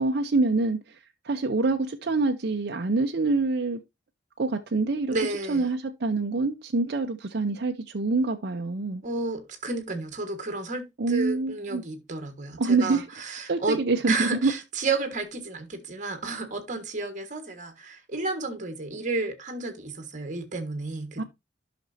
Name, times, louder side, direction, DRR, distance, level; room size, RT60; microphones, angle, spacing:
voice 1, 0.0-3.8 4.4-5.1 5.5-9.0 11.0-11.8 12.6-13.1 13.5-14.5 21.2-21.3, right 3 dB, 60° right, 0.6 m, -26 dB
voice 2, 5.1-5.7 9.0-13.8 14.1-21.2, right 3 dB, 40° right, 1.5 m, -32 dB
11.0 x 5.9 x 2.7 m
head